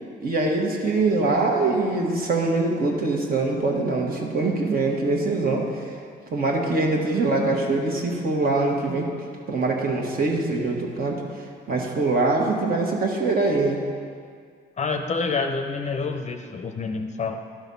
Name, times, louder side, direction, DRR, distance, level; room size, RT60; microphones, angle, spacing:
voice 1, 0.2-5.7 6.3-9.1 9.5-11.1 11.7-13.8, right 3 dB, 50° right, -1 dB, 1.5 m, -23 dB
voice 2, 14.8-17.4, left 4 dB, 35° left, 5 dB, 0.6 m, -27 dB
11.5 x 4.0 x 5.4 m, 2.1 s
cardioid pair, 90°, 20 cm